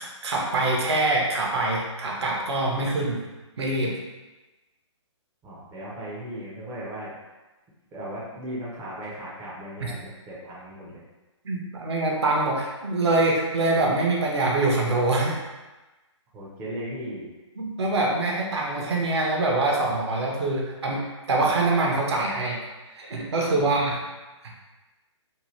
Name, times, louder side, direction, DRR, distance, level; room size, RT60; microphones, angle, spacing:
voice 1, 0.0-3.2 3.6-4.0 11.4-15.4 17.6-22.6 22.9-24.0, right 2 dB, 60° right, -1 dB, 0.7 m, -24 dB
voice 2, 5.4-7.1 7.9-11.0 16.3-17.3 23.6-24.0, right 1 dB, 10° right, -8 dB, 0.4 m, -37 dB
2.8 x 2.1 x 3.0 m, 1.1 s
hypercardioid pair, 145°, 16 cm